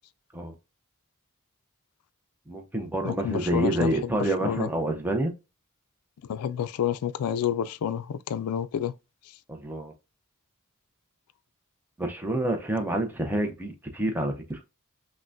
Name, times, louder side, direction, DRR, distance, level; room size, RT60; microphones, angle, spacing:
voice 1, 2.5-5.3 9.5-9.9 12.0-14.6, right 1 dB, 10° right, 0.6 m, -28 dB
voice 2, 3.0-4.1 4.4-4.7 6.3-8.9, left 9 dB, 80° left, 0.3 m, -29 dB
5.8 x 2.1 x 2.5 m
head